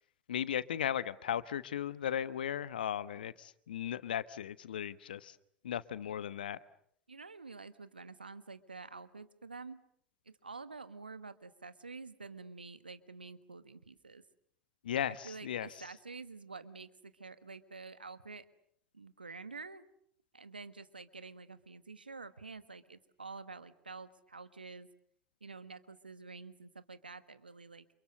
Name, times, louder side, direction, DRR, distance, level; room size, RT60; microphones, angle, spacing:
voice 1, 0.3-5.3 5.6-6.6 14.8-15.7, left 10 dB, 75° left, 15 dB, 1.2 m, -36 dB
voice 2, 7.1-9.8 10.2-14.2 15.1-18.4 18.9-19.8 20.3-24.9 25.4-27.8, right 4 dB, 85° right, 12 dB, 1.5 m, -48 dB
29.5 x 27.5 x 6.7 m, 0.66 s
figure-of-eight pair, 75°, 5 cm